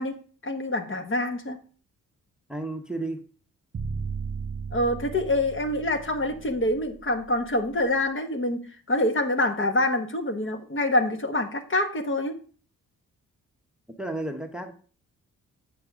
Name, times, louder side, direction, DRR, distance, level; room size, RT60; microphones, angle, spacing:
voice 1, 0.0-1.6 4.7-8.6 8.9-12.4, left 1 dB, 35° left, 6 dB, 1.4 m, -26 dB
voice 2, 2.5-3.3 14.0-14.7, right 2 dB, ahead, 6 dB, 1.0 m, -32 dB
sound 1, 3.7-7.8, right 5 dB, 30° right, 0.7 m, -36 dB
8.0 x 6.7 x 3.7 m, 0.41 s
supercardioid pair, 55°, 34 cm